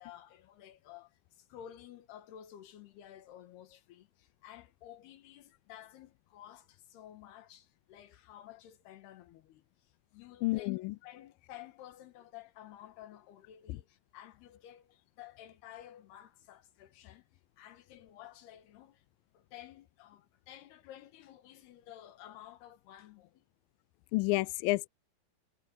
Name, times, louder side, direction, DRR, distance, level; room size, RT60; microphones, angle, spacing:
voice 1, 0.0-9.6 10.1-10.8 11.0-17.3 17.6-19.0 19.3-23.5, left 11 dB, 70° left, 3.5 m, -53 dB
voice 2, 10.4-11.0 24.1-24.9, left 21 dB, 90° left, 2.0 m, -30 dB
omnidirectional pair, 4.9 m